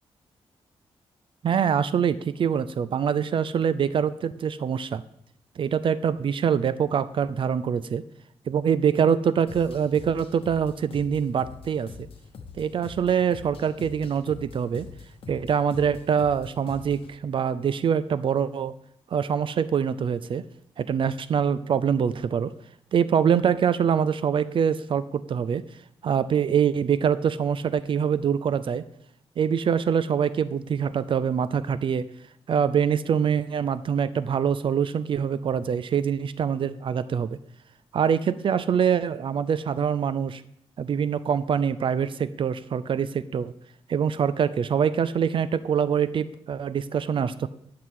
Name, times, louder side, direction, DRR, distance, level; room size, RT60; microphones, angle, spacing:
voice 1, 1.4-5.0 5.6-8.0 8.5-12.1 12.6-14.9 15.3-18.7 19.1-20.4 20.8-22.5 22.9-25.6 26.0-28.8 29.4-32.1 32.5-37.4 37.9-40.4 40.8-43.5 43.9-47.5, right 7 dB, 55° right, 15 dB, 0.3 m, -24 dB
sound 1, 9.5-17.1, left 5 dB, 60° left, 1.0 m, -44 dB
11.0 x 6.0 x 3.7 m, 0.73 s
wide cardioid pair, 125°, 11 cm